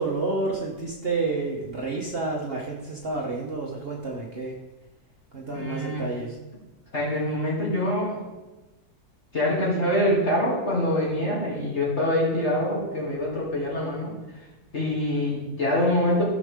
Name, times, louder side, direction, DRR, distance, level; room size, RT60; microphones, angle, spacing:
voice 1, 0.0-4.6 5.3-6.4, right 3 dB, 40° right, -2 dB, 1.2 m, -29 dB
voice 2, 5.5-6.1 6.9-8.2 9.3-14.1 14.7-16.3, left 1 dB, 40° left, -5 dB, 3.2 m, -25 dB
15.0 x 6.4 x 3.6 m, 1.1 s
omnidirectional pair, 1.7 m